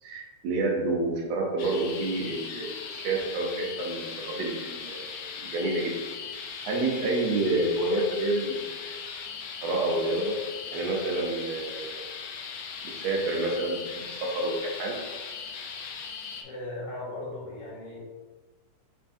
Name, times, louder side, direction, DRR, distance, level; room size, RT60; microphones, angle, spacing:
voice 1, 0.0-5.9 6.6-9.0 9.6-10.3 10.7-12.0 12.8-15.0, right 2 dB, 80° right, -1 dB, 1.5 m, -29 dB
sound 1, 1.6-16.4, left 6 dB, 85° left, 1.5 m, -39 dB
voice 2, 16.4-18.0, left 2 dB, 70° left, -7 dB, 2.8 m, -37 dB
5.4 x 3.5 x 2.5 m, 1.3 s
omnidirectional pair, 3.6 m